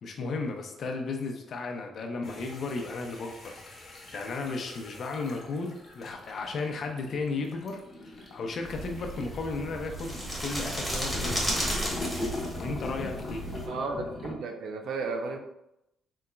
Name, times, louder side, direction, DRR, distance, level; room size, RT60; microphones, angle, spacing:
voice 1, 0.0-11.7 12.6-13.4, left 3 dB, 60° left, 3 dB, 0.7 m, -35 dB
sound 1, 2.2-10.2 11.1-14.3, left 2 dB, 40° left, 1.1 m, -41 dB
sound 2, 8.7-13.7, equal, ahead, 1.4 m, -33 dB
voice 2, 13.7-15.4, right 4 dB, 70° right, 4 dB, 0.6 m, -33 dB
3.9 x 3.6 x 2.3 m, 0.84 s
cardioid pair, 90°, 0 cm